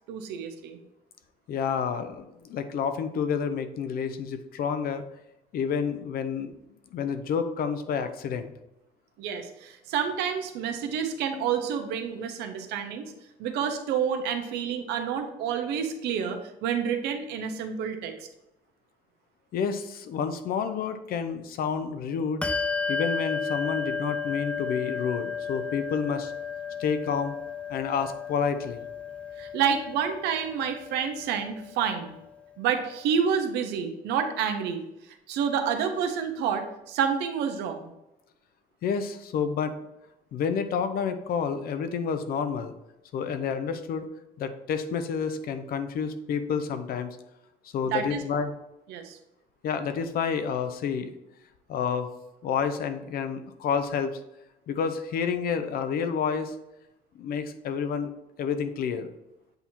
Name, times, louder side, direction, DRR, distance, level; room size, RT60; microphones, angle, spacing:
voice 1, 0.1-0.8 9.2-13.1 13.4-18.1 29.4-32.1 32.6-34.8 35.3-37.9 47.9-48.2 48.9-49.2, right 7 dB, 85° right, 6 dB, 0.8 m, -29 dB
voice 2, 1.5-5.0 5.5-6.6 6.9-8.5 19.5-22.5 22.9-26.3 26.8-27.3 27.7-28.8 38.8-39.8 40.3-42.7 43.1-44.1 44.4-47.2 47.7-48.5 49.6-51.1 51.7-52.1 52.4-54.2 54.7-56.6 57.1-58.1 58.4-59.1, left 6 dB, 60° left, 10 dB, 0.7 m, -29 dB
Bell, 22.4-32.4, left 5 dB, 5° left, 0.3 m, -34 dB
8.0 x 2.8 x 4.4 m, 0.90 s
cardioid pair, 110°, 17 cm